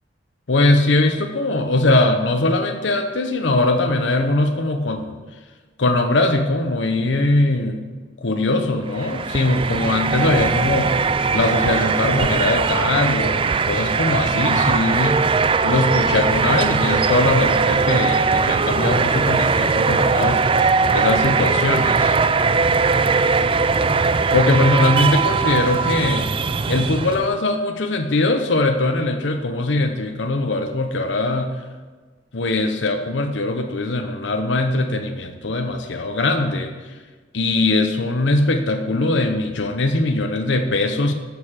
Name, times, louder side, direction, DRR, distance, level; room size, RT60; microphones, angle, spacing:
voice 1, 0.5-5.1 5.8-7.8 8.2-11.1 11.3-15.3 15.6-20.5 20.9-22.2 24.3-26.3 26.7-31.6 32.3-36.7 37.3-41.1, left 2 dB, 75° left, 5 dB, 0.9 m, -21 dB
sound 1, 8.9-27.3, right 4 dB, 30° right, 0.4 m, -20 dB
11.5 x 6.8 x 7.5 m, 1.4 s
head